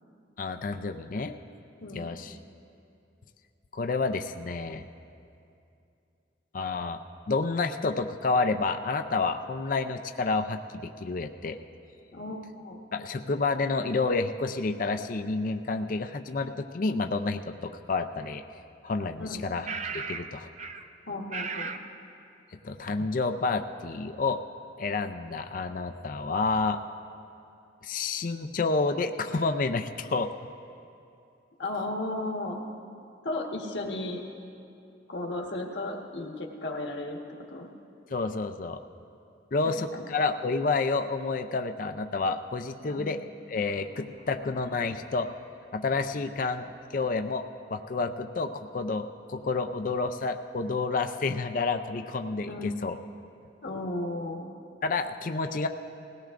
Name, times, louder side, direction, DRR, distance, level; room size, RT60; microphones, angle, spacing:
voice 1, 0.4-1.4 1.9-2.4 3.7-4.8 6.5-7.0 7.3-11.6 12.9-18.4 18.8-19.7 19.9-20.5 22.6-24.4 24.8-26.8 27.8-30.3 38.1-38.8 39.5-43.2 43.5-45.3 45.7-46.6 46.9-52.9 54.8-55.7, left 3 dB, 50° left, 7 dB, 0.4 m, -29 dB
voice 2, 1.8-2.1 12.1-12.8 19.2-19.4 21.1-21.8 31.6-32.6 33.2-34.2 35.1-37.2 37.5-37.7 39.6-40.1 42.8-43.1 52.5-52.7 53.6-54.5, left 2 dB, 75° left, 0 dB, 1.4 m, -34 dB
sound 1, 18.2-18.3 19.6-20.3 20.6-20.9 21.3-21.9, right 5 dB, 40° right, 0.5 m, -35 dB
20.0 x 17.5 x 2.5 m, 2.6 s
head